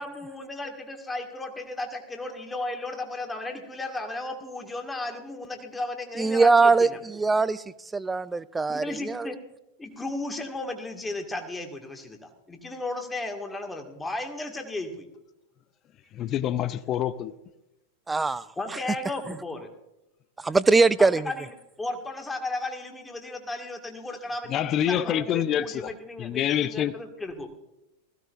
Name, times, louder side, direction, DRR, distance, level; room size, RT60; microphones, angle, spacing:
voice 1, 0.0-7.0 8.7-9.4 9.8-15.1 18.6-19.7 21.0-27.5, left 2 dB, 10° left, 2.0 m, -35 dB
voice 2, 6.2-7.6 7.9-9.3 18.1-18.4 20.4-21.2, right 4 dB, 10° right, 0.5 m, -21 dB
voice 3, 16.1-17.3 24.5-25.9 26.2-26.9, left 10 dB, 30° left, 0.6 m, -26 dB
20.5 x 15.5 x 2.6 m
figure-of-eight pair, 90°, 0 cm